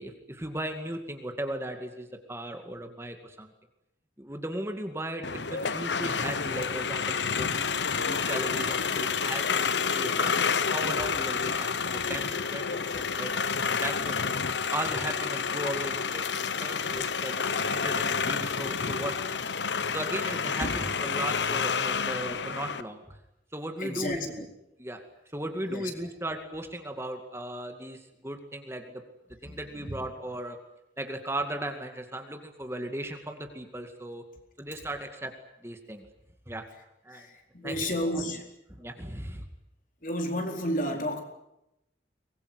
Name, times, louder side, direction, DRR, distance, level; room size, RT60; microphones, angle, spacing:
voice 1, 0.0-3.5 4.2-7.6 7.9-14.2 14.7-19.4 19.9-23.2 23.5-24.4 24.8-25.0 25.3-29.0 29.4-30.6 31.0-34.2 34.6-35.3 35.6-36.1 36.5-36.6 37.0-37.3 37.6-38.0 38.8-39.4, right 1 dB, 15° right, 5 dB, 2.2 m, -37 dB
sound 1, 5.2-22.8, left 5 dB, 85° left, 1.1 m, -29 dB
voice 2, 23.8-24.5 25.7-25.9 29.4-29.9 37.1-38.4 40.0-41.2, equal, 45° left, 3 dB, 4.3 m, -32 dB
23.5 x 21.5 x 9.8 m, 0.85 s
head